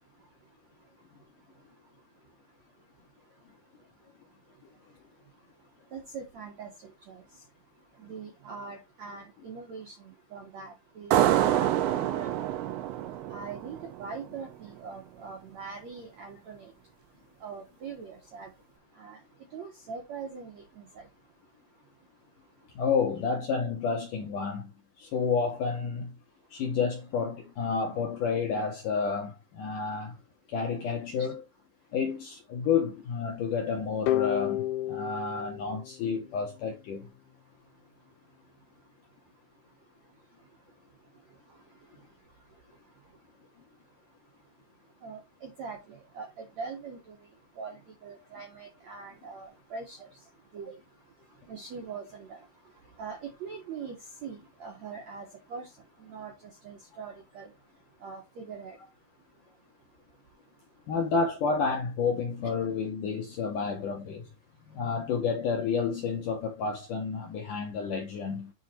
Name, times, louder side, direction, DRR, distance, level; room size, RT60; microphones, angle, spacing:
voice 1, 0.0-22.8 31.2-31.3 37.4-60.9 64.5-64.8, right 5 dB, 70° right, 1.7 m, -45 dB
sound 1, 11.1-14.4, right 12 dB, 90° right, 3.2 m, -27 dB
voice 2, 22.8-24.7 25.0-26.2 26.5-30.1 30.5-31.4 31.9-37.1 60.9-64.3 64.7-68.5, left 5 dB, 70° left, 2.1 m, -30 dB
sound 2, 34.1-36.9, left 14 dB, 85° left, 2.9 m, -31 dB
8.5 x 4.0 x 4.4 m
omnidirectional pair, 5.2 m